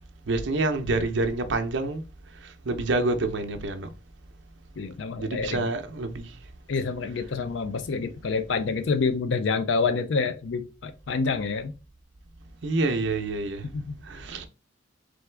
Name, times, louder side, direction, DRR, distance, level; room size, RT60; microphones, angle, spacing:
voice 1, 0.3-2.0 2.4-3.9 5.2-6.3 12.6-13.6 14.0-14.4, right 2 dB, 65° right, 0.7 m, -27 dB
voice 2, 4.8-5.7 6.7-11.7 13.6-13.9, left 4 dB, 65° left, 0.4 m, -27 dB
3.8 x 3.4 x 3.3 m
head